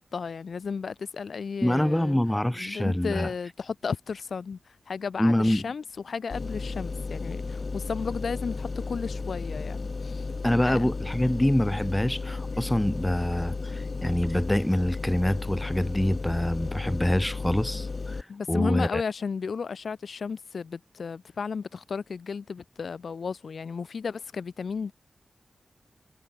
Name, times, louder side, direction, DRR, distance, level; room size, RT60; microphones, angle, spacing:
voice 1, 0.1-2.2 2.6-4.6 4.9-10.2 10.5-10.9 18.3-24.9, left 5 dB, 75° left, 0.9 m, -34 dB
voice 2, 1.6-3.3 5.2-5.7 10.4-19.0, left 1 dB, 10° left, 0.3 m, -25 dB
sound 1, 6.3-18.2, left 4 dB, 55° left, 1.5 m, -34 dB
cardioid pair, 40°, 0 cm